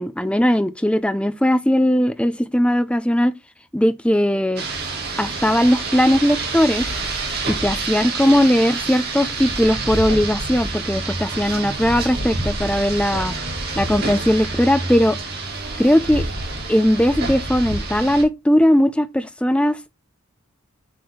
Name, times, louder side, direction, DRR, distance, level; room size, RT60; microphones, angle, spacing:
voice 1, 0.0-3.3 3.7-4.6 5.2-6.9 7.5-13.3 13.8-15.2 15.8-16.2 16.7-19.9, equal, 5° left, 0.5 m, -18 dB
Rain, 4.6-18.2, right 3 dB, 45° right, 2.6 m, -27 dB
7.7 x 4.3 x 3.3 m
head